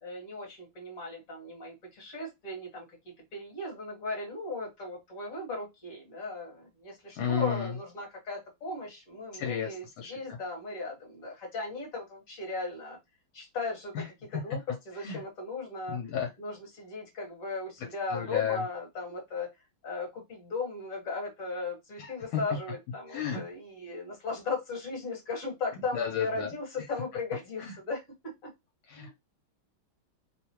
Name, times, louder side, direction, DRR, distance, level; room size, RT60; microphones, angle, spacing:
voice 1, 0.0-13.0 13.3-16.0 16.4-19.5 19.8-28.5 29.0-29.1, left 3 dB, 45° left, 0 dB, 1.8 m, -37 dB
voice 2, 7.2-7.7 9.3-10.4 14.0-14.1 15.0-15.2 15.9-16.3 18.1-18.6 22.0-22.4 23.1-23.4 25.9-26.5 28.9-29.1, left 8 dB, 75° left, 0 dB, 1.6 m, -32 dB
3.5 x 2.3 x 2.9 m, 0.20 s
omnidirectional pair, 2.3 m